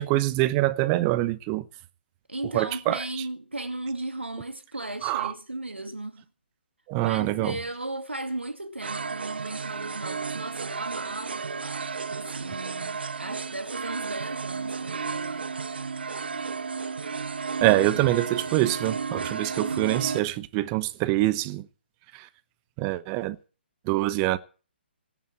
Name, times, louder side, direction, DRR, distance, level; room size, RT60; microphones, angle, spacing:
voice 1, 0.0-1.6 2.5-3.0 5.0-5.3 6.9-7.5 17.6-21.7 22.1-22.3 22.8-23.4 23.9-24.4, right 17 dB, 20° right, 0.9 m, -25 dB
voice 2, 2.3-6.2 7.0-15.5, right 2 dB, 80° right, 2.3 m, -36 dB
sound 1, 8.8-20.2, right 5 dB, 60° right, 0.8 m, -33 dB
18.0 x 7.3 x 8.6 m
figure-of-eight pair, 135°, 6 cm